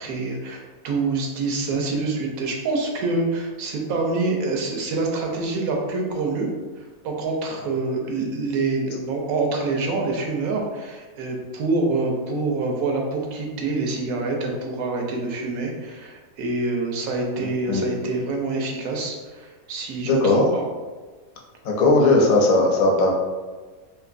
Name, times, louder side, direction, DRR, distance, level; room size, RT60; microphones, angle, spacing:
voice 1, 0.0-6.5 7.0-20.7, right 3 dB, 85° right, 1 dB, 1.0 m, -26 dB
voice 2, 17.4-17.9 20.0-20.5 21.6-23.1, left 2 dB, 75° left, -1 dB, 1.0 m, -18 dB
3.0 x 2.6 x 2.4 m, 1.3 s
omnidirectional pair, 1.5 m